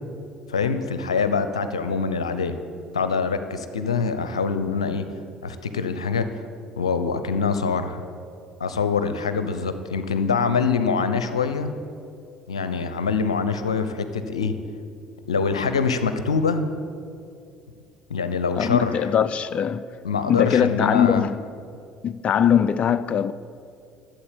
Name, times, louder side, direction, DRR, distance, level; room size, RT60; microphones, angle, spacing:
voice 1, 0.5-2.6 2.9-5.1 5.4-6.3 6.8-8.0 8.6-11.7 12.5-14.5 15.3-16.7 18.1-19.0 20.0-21.3, left 5 dB, 85° left, 0.7 m, -24 dB
voice 2, 18.6-19.9 20.3-21.4 22.0-23.3, left 8 dB, 40° left, 0.5 m, -21 dB
12.5 x 7.8 x 8.5 m
hypercardioid pair, 55°, 3 cm